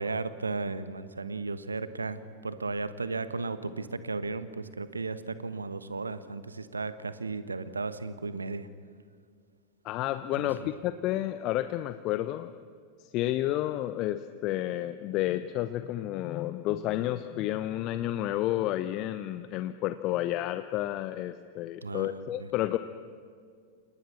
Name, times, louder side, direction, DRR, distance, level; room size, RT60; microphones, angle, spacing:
voice 1, 0.0-8.7 10.4-10.7 21.8-22.5, right 3 dB, 75° right, 13 dB, 1.3 m, -35 dB
voice 2, 9.8-12.5 13.0-22.8, left 14 dB, 40° left, 12 dB, 0.9 m, -31 dB
29.0 x 28.5 x 6.1 m, 2.1 s
figure-of-eight pair, 90°, 0 cm